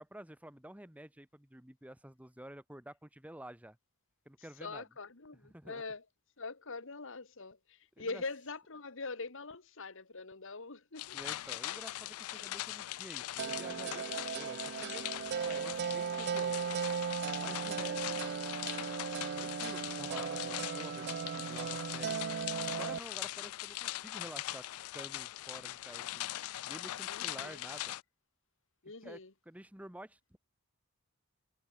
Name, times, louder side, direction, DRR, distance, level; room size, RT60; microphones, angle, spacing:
voice 1, 0.0-3.8 4.2-4.8 5.4-5.8 8.0-8.2 11.1-16.5 17.4-18.3 19.4-22.2 22.7-24.6 24.9-26.3 26.7-27.9 29.0-29.2 29.4-30.4, right 1 dB, 5° right, 1.2 m, -50 dB
voice 2, 4.6-6.0 6.4-11.2 27.1-27.6 28.8-29.3, left 3 dB, 60° left, 1.7 m, -43 dB
sound 1, 11.0-28.0, left 15 dB, 85° left, 0.4 m, -41 dB
sound 2, 13.4-23.0, right 7 dB, 50° right, 0.4 m, -37 dB
head